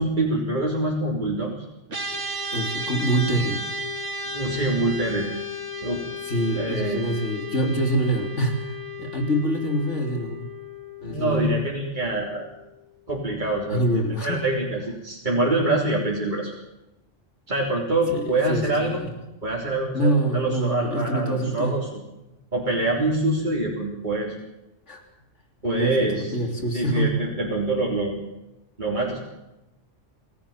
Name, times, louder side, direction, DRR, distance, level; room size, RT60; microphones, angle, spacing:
voice 1, 0.0-1.5 4.3-5.3 5.7-6.0 6.5-7.0 11.0-12.5 13.1-16.5 17.5-19.0 19.4-22.0 22.5-24.4 25.6-26.3 26.7-28.2 28.8-29.3, right 2 dB, 40° right, -3 dB, 4.0 m, -25 dB
sound 1, 1.9-13.4, left 1 dB, 75° right, 2.9 m, -34 dB
voice 2, 2.5-3.6 6.2-8.7 9.0-10.5 11.0-11.6 13.7-14.6 18.1-19.2 19.9-21.8 24.9-25.0 25.7-27.2, right 1 dB, 70° left, 3 dB, 3.5 m, -25 dB
28.0 x 17.5 x 7.3 m, 0.96 s
omnidirectional pair, 1.3 m